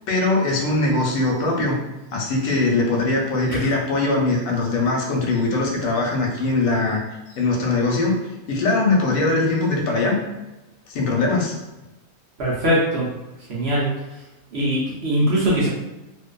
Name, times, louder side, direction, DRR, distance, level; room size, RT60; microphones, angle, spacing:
voice 1, 0.1-1.8 2.1-7.0 7.3-8.2 8.5-10.2 10.9-11.6, left 3 dB, 85° left, -1 dB, 1.1 m, -21 dB
voice 2, 12.4-13.1 13.5-13.9 14.5-15.7, equal, 60° right, -6 dB, 0.7 m, -21 dB
2.5 x 2.2 x 2.2 m, 1.0 s
omnidirectional pair, 1.5 m